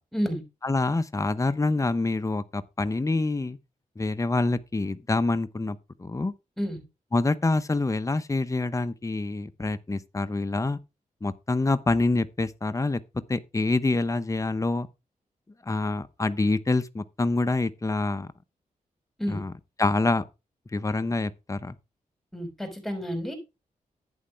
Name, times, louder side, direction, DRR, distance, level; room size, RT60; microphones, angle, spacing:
voice 1, 0.1-0.4 6.6-6.8 19.2-19.4 22.3-23.4, equal, ahead, 5.8 m, -30 dB
voice 2, 0.6-3.6 4.0-6.3 7.1-10.8 11.2-13.0 13.3-14.9 15.7-18.3 19.3-19.5 19.8-20.2 20.7-21.7, left 2 dB, 25° left, 0.9 m, -26 dB
11.0 x 8.8 x 3.4 m
cardioid pair, 70°, 14 cm